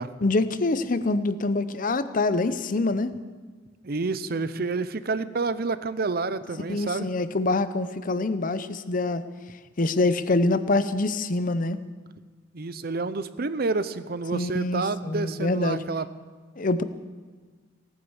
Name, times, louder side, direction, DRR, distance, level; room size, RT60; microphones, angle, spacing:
voice 1, 0.2-3.1 6.7-9.2 9.8-11.8 14.3-15.8 16.6-16.8, left 2 dB, 45° left, 13 dB, 0.7 m, -25 dB
voice 2, 3.8-7.1 12.5-16.1, right 3 dB, 55° right, 13 dB, 0.7 m, -29 dB
18.0 x 9.9 x 7.2 m, 1.4 s
head